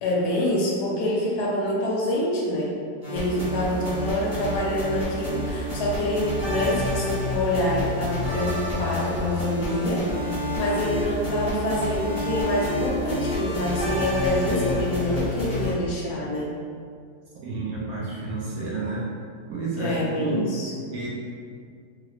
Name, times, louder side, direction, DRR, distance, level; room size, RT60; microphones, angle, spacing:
voice 1, 0.0-2.8 3.1-16.6 19.8-20.7, left 1 dB, 75° left, -4 dB, 1.2 m, -26 dB
sound 1, 3.0-15.7, left 1 dB, 15° left, 0.7 m, -29 dB
voice 2, 17.4-19.1 19.5-20.5 20.9-21.1, right 3 dB, 70° right, -6 dB, 1.0 m, -30 dB
3.7 x 2.0 x 3.0 m, 2.2 s
omnidirectional pair, 1.9 m